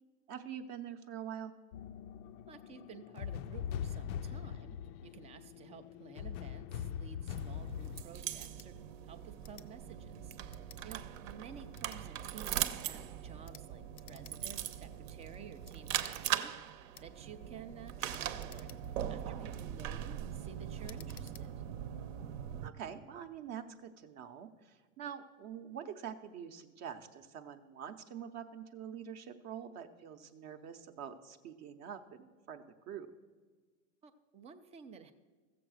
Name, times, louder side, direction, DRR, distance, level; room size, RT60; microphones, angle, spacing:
voice 1, 0.3-1.5 22.6-33.1, right 8 dB, 40° right, 6 dB, 0.7 m, -45 dB
sound 1, 1.7-8.0, left 9 dB, 60° left, 0.5 m, -42 dB
voice 2, 2.5-4.8 5.0-8.7 9.0-21.5 34.0-35.1, right 6 dB, 15° right, 9 dB, 0.4 m, -53 dB
sound 2, 7.3-22.7, right 10 dB, 65° right, 0.8 m, -40 dB
sound 3, 8.4-8.7 9.4-9.7 10.5-10.8 11.6-12.0 12.5-12.8 13.4-13.7 13.9-14.4 14.7-14.8 15.6-15.8 16.9-17.1 18.0-19.1 19.6-19.9 20.8-21.5, left 10 dB, 80° left, 0.9 m, -57 dB
14.0 x 7.7 x 6.3 m, 1.5 s
supercardioid pair, 125°, 42 cm